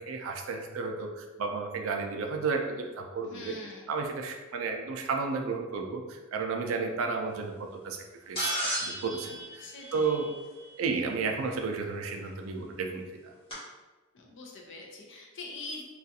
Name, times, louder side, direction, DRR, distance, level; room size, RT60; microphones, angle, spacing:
voice 1, 0.0-3.6 3.9-10.3 10.8-13.3, right 4 dB, 70° right, 3 dB, 0.3 m, -33 dB
voice 2, 3.2-3.9 9.6-10.2 14.1-15.8, left 3 dB, 55° left, 0 dB, 0.5 m, -43 dB
sound 1, 8.3-10.7 12.2-12.3 13.5-13.6, equal, 25° left, 1.0 m, -34 dB
2.4 x 2.3 x 2.7 m, 1.2 s
head